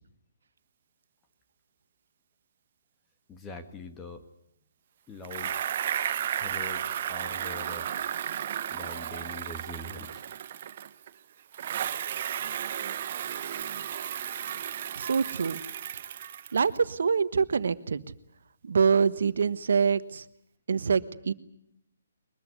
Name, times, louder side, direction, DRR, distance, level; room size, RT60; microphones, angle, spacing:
voice 1, 3.3-4.2 5.1-5.6 6.4-7.9 8.7-10.2, left 2 dB, 15° left, 6 dB, 1.9 m, -43 dB
Bicycle, 5.2-11.1 11.5-16.8, right 10 dB, 45° right, 1.0 m, -34 dB
voice 2, 15.0-15.6 16.5-18.0 18.6-20.2 20.7-21.3, right 5 dB, 70° right, 14 dB, 1.3 m, -25 dB
22.5 x 21.5 x 9.6 m, 0.75 s
hypercardioid pair, 145°, 0 cm